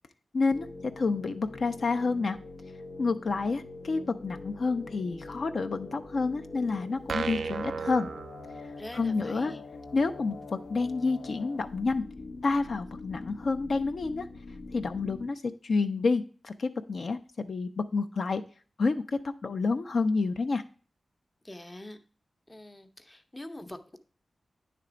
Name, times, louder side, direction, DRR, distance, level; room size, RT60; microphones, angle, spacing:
voice 1, 0.3-0.7 1.0-2.4 3.0-8.1 8.9-9.5 9.9-10.4 10.7-12.0 12.4-14.3 14.7-18.4 18.8-20.6, left 4 dB, 60° left, 8 dB, 0.4 m, -29 dB
sound 1, 0.5-15.3, left 3 dB, 85° left, 0.8 m, -44 dB
sound 2, 7.1-9.0, right 5 dB, 85° right, 0.3 m, -34 dB
voice 2, 8.8-9.6 21.4-22.0 22.5-24.0, left 1 dB, 15° left, 8 dB, 0.6 m, -44 dB
9.6 x 3.3 x 4.9 m, 0.39 s
wide cardioid pair, 150°, 0 cm